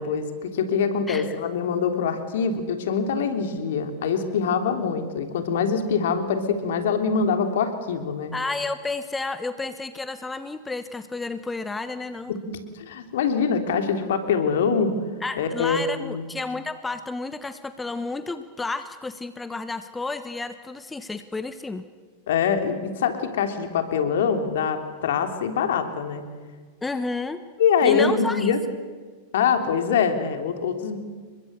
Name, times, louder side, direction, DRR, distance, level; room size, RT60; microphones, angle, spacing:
voice 1, 0.0-8.3 12.3-14.9 15.4-16.2 22.3-26.2 27.6-28.6 29.3-31.0, left 6 dB, 60° left, 6 dB, 3.3 m, -24 dB
voice 2, 8.3-12.3 15.2-21.8 26.8-27.4 27.8-28.5, left 3 dB, 10° left, 11 dB, 1.2 m, -31 dB
30.0 x 23.0 x 6.8 m, 1.5 s
figure-of-eight pair, 90°, 0 cm